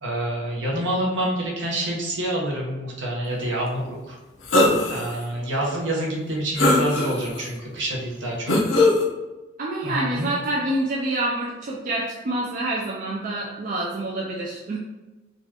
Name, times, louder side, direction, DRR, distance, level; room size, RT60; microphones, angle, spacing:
voice 1, 0.0-4.2 4.9-8.5 9.8-10.3, right 1 dB, 70° right, -3 dB, 0.9 m, -27 dB
sound 1, 4.5-5.1 5.6-5.7 6.6-7.4 8.5-9.0, left 2 dB, 80° left, 0.7 m, -19 dB
voice 2, 9.6-14.8, right 1 dB, 45° right, -4 dB, 0.4 m, -27 dB
4.0 x 2.4 x 2.9 m, 1.1 s
head